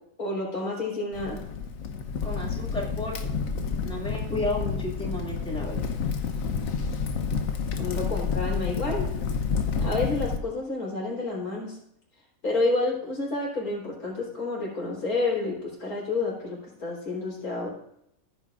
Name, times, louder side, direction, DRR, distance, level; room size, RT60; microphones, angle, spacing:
voice 1, 0.2-1.4 7.7-9.1 9.8-11.8 12.4-17.7, left 2 dB, 85° left, -3 dB, 4.6 m, -29 dB
Crackle, 1.1-10.4, left 5 dB, 70° left, 1.3 m, -29 dB
voice 2, 2.2-3.3 3.8-5.9, left 1 dB, 5° left, -3 dB, 2.4 m, -33 dB
16.0 x 9.0 x 2.5 m, 0.75 s
omnidirectional pair, 1.5 m